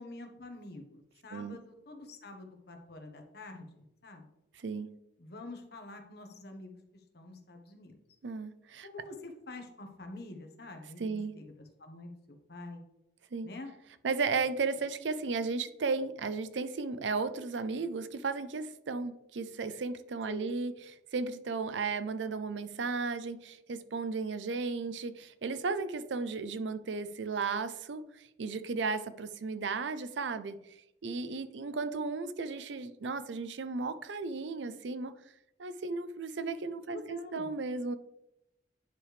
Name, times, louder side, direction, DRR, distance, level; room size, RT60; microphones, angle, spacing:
voice 1, 0.0-4.3 5.2-6.7 7.1-7.9 8.8-12.8 13.4-13.7 20.3-20.5 36.9-37.5, left 2 dB, 65° left, 4 dB, 1.2 m, -47 dB
voice 2, 4.6-4.9 8.2-8.9 11.0-11.4 13.3-13.5 14.0-20.7 21.1-28.0 28.4-30.6 31.0-35.1 35.6-38.0, right 4 dB, 85° right, 12 dB, 0.5 m, -34 dB
9.9 x 4.9 x 3.3 m, 0.84 s
head